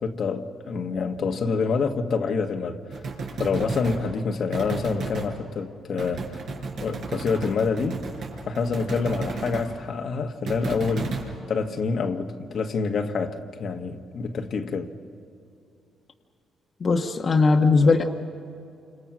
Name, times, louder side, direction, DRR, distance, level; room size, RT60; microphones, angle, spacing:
voice 1, 0.0-2.8 3.4-6.4 6.8-8.0 8.5-11.2 11.5-14.9 17.8-17.9, left 5 dB, 60° left, 1.5 m, -27 dB
sound 1, 2.9-4.0 4.5-5.3 6.0-9.7 10.5-11.3, right 4 dB, 70° right, 5.3 m, -33 dB
voice 2, 16.8-18.1, left 4 dB, 40° left, 1.2 m, -19 dB
28.5 x 26.5 x 6.2 m
cardioid pair, 90°, 0 cm